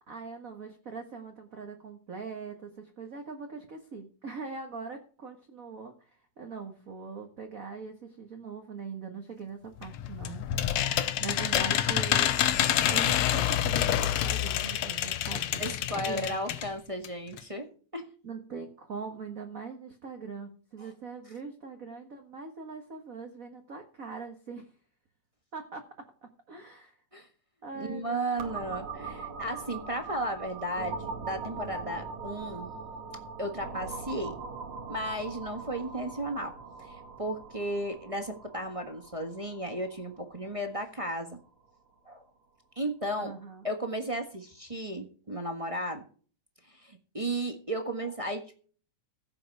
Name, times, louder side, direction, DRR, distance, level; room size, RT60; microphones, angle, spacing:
voice 1, 0.1-10.5 10.8-16.4 18.2-24.7 25.5-27.0 27.6-28.2 43.2-43.7, right 5 dB, 35° right, 4 dB, 1.5 m, -42 dB
sound 1, 9.8-16.7 17.0-17.1 17.4-17.5, left 11 dB, 75° left, 2.1 m, -27 dB
voice 2, 15.6-18.1 20.8-20.9 27.1-27.3 27.7-32.7 33.4-34.4 34.9-41.4 42.0-42.2 42.7-43.3 43.6-46.0 46.7-48.7, right 1 dB, 20° right, 5 dB, 0.8 m, -34 dB
sound 2, 28.4-42.0, right 4 dB, 65° right, 3.3 m, -41 dB
16.0 x 8.0 x 4.8 m, 0.41 s
omnidirectional pair, 3.4 m